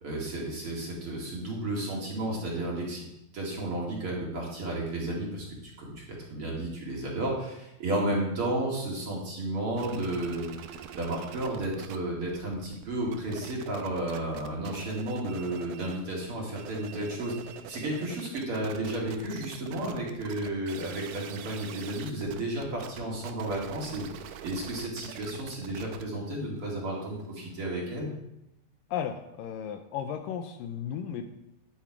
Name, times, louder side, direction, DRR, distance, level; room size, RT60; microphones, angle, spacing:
voice 1, 0.0-3.0 3.3-10.5 10.7-28.1, right 1 dB, 40° right, -3 dB, 2.8 m, -33 dB
sound 1, 9.8-12.0 12.2-16.1 16.4-28.0, right 9 dB, 75° right, 2.2 m, -45 dB
voice 2, 28.9-31.3, left 8 dB, 80° left, 7 dB, 2.2 m, -34 dB
10.5 x 9.8 x 4.7 m, 0.89 s
omnidirectional pair, 4.2 m